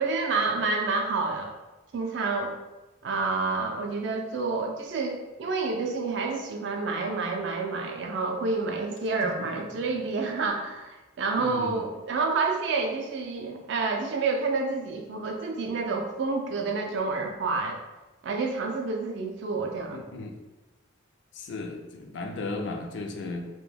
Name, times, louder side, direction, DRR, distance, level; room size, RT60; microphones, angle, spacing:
voice 1, 0.0-1.5 1.9-2.5 3.0-17.8 18.2-20.0, right 3 dB, 60° right, 2 dB, 0.3 m, -29 dB
voice 2, 11.4-11.9 19.9-20.3 21.3-23.5, left 2 dB, 60° left, 3 dB, 0.3 m, -35 dB
2.2 x 2.1 x 3.2 m, 1.1 s
head